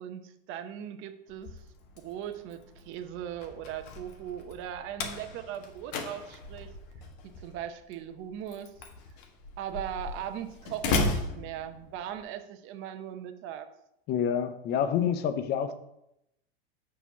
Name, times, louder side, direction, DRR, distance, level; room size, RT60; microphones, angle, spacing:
voice 1, 0.0-1.6 2.0-6.7 7.2-8.7 9.6-13.7, right 10 dB, 40° right, 0.8 m, -39 dB
Slam, 1.3-12.2, left 3 dB, 55° left, 1.5 m, -36 dB
voice 2, 14.1-15.7, left 8 dB, 35° left, 0.7 m, -27 dB
7.1 x 4.2 x 6.0 m
hypercardioid pair, 110°, 31 cm